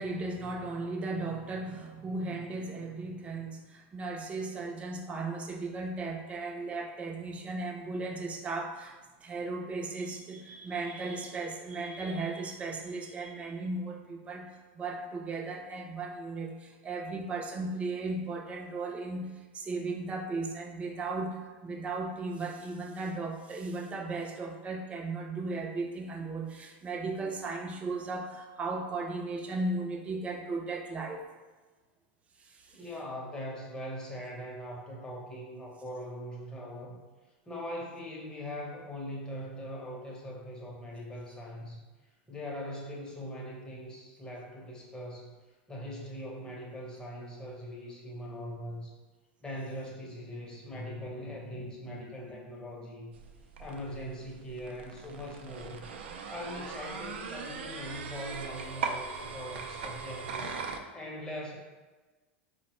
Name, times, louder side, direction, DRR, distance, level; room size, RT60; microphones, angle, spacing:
voice 1, 0.0-31.2 32.4-32.9, right 3 dB, 20° right, 2 dB, 0.5 m, -36 dB
voice 2, 32.7-37.0 37.5-41.8 42.3-45.3 45.7-48.9 49.4-53.1 53.6-55.9 56.3-60.5 60.9-61.6, equal, 15° left, -2 dB, 0.8 m, -41 dB
sound 1, 53.1-60.8, right 5 dB, 85° right, 0.4 m, -40 dB
4.2 x 2.1 x 3.0 m, 1.3 s
supercardioid pair, 125°, 6 cm